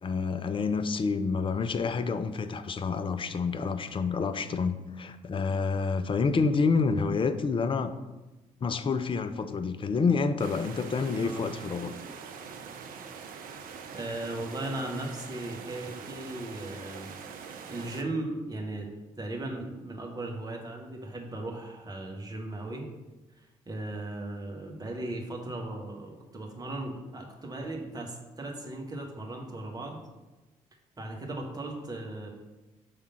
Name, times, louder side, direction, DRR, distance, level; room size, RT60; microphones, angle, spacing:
voice 1, 0.0-7.9 8.6-11.9, left 4 dB, 30° left, 10 dB, 0.5 m, -28 dB
sound 1, 10.4-18.0, right 6 dB, 50° right, 0.6 m, -43 dB
voice 2, 11.2-11.5 13.9-17.1 17.7-18.9 19.2-22.9 23.4-30.0 31.0-32.3, right 2 dB, 20° right, 0 dB, 1.3 m, -37 dB
5.0 x 3.6 x 5.6 m, 1.1 s
figure-of-eight pair, 45°, 18 cm